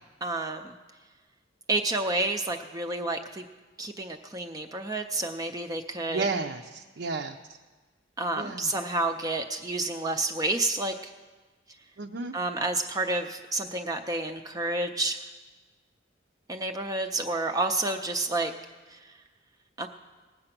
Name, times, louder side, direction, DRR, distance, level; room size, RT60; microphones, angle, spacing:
voice 1, 0.2-0.7 1.7-3.5 3.8-6.3 8.2-11.1 12.3-15.2 16.5-18.5 18.9-19.1 19.8-19.9, right 2 dB, 20° right, 5 dB, 0.5 m, -30 dB
voice 2, 6.1-7.4 8.3-8.7 12.0-12.4, right 4 dB, 65° right, 3 dB, 0.6 m, -32 dB
19.0 x 7.7 x 5.9 m, 1.3 s
head